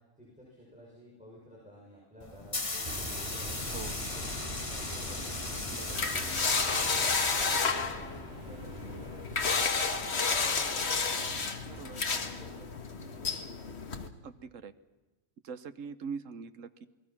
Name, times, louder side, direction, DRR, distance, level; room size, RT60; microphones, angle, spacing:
voice 1, 0.2-5.4 5.8-11.3 11.8-13.4, equal, 5° right, -5 dB, 6.5 m, -54 dB
sound 1, 2.2-8.2, left 3 dB, 25° left, 1.4 m, -37 dB
sound 2, 2.8-12.6, right 1 dB, 55° right, 3.3 m, -44 dB
sound 3, 3.6-14.1, left 4 dB, 60° left, 1.7 m, -32 dB
voice 2, 5.7-6.1 11.6-12.0 14.2-14.7 15.4-16.9, right 5 dB, 85° right, 12 dB, 1.4 m, -42 dB
28.0 x 20.0 x 6.0 m, 1.2 s
omnidirectional pair, 1.3 m